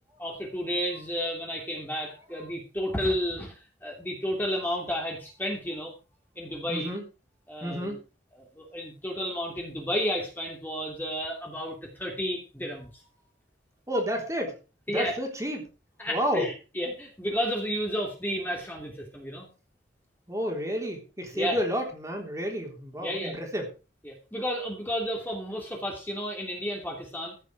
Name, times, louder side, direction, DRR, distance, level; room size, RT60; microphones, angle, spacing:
voice 1, 0.2-5.9 6.4-6.9 7.5-8.0 8.4-13.0 14.9-15.1 16.0-19.5 21.3-21.6 23.0-23.3 24.0-27.4, equal, 10° left, 0 dB, 3.0 m, -32 dB
voice 2, 6.7-7.0 7.6-8.0 13.9-14.6 14.9-15.7 16.1-16.5 20.3-23.7, equal, 15° right, 2 dB, 3.7 m, -30 dB
15.0 x 9.6 x 4.9 m, 0.32 s
head